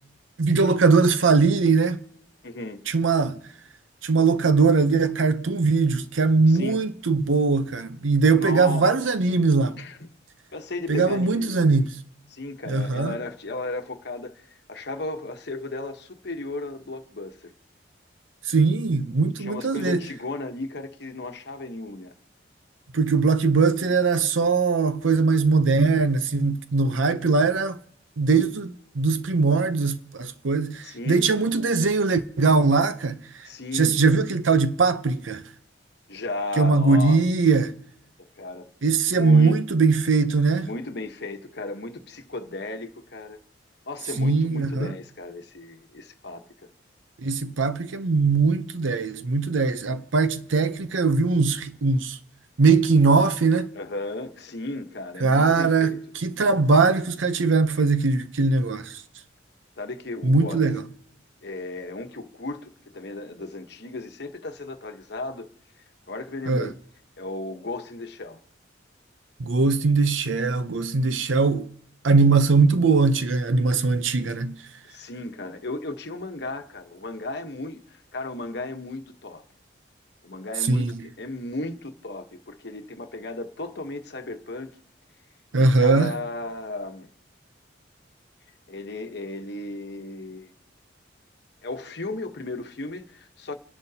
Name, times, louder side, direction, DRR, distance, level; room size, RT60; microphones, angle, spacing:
voice 1, 0.4-2.0 2.9-3.4 4.0-9.8 10.9-11.9 12.7-13.2 18.5-20.0 22.9-27.8 28.2-33.5 33.7-35.4 36.6-37.7 38.8-40.7 44.2-44.9 47.2-52.2 52.6-53.7 55.2-59.0 60.2-60.8 66.5-66.7 69.4-71.7 72.0-74.6 80.7-80.9 85.5-86.1, right 4 dB, 90° right, 0.7 m, -21 dB
voice 2, 2.4-2.8 6.5-6.9 8.4-9.4 9.8-10.1 10.5-11.7 12.3-17.5 19.4-22.1 30.8-31.3 33.4-34.0 36.1-37.2 38.4-38.7 39.1-39.6 40.6-43.4 43.9-46.4 53.7-56.0 59.8-60.7 61.4-65.5 66.1-66.8 67.2-68.4 74.9-79.4 80.2-84.7 85.5-87.1 88.7-90.5 91.6-93.6, left 2 dB, 60° left, 1.1 m, -35 dB
30.0 x 10.5 x 2.8 m
head